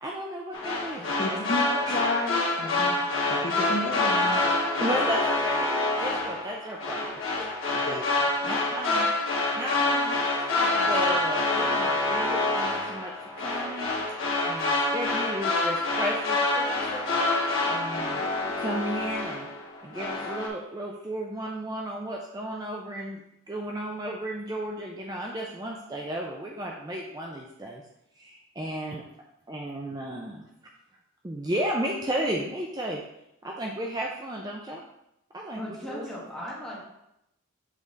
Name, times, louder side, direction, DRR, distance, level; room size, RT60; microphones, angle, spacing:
voice 1, 0.0-1.4 1.7-2.0 4.8-5.7 6.0-8.0 8.4-9.1 9.5-10.2 10.6-13.9 14.4-17.1 17.7-19.5 19.8-27.8 28.2-29.0 29.5-30.4 31.2-33.0 33.4-34.8 35.3-35.6 35.9-36.1, right 1 dB, 20° right, -1 dB, 0.4 m, -34 dB
sound 1, 0.5-19.6 19.9-20.5, left 2 dB, 60° left, 1.4 m, -27 dB
voice 2, 1.0-2.9 3.3-4.5 4.8-4.9 5.1-5.3 7.7-8.0, left 1 dB, 40° left, 0 dB, 0.8 m, -32 dB
voice 3, 35.5-36.8, left 1 dB, 5° left, -7 dB, 1.6 m, -37 dB
7.4 x 3.6 x 3.9 m, 0.82 s
head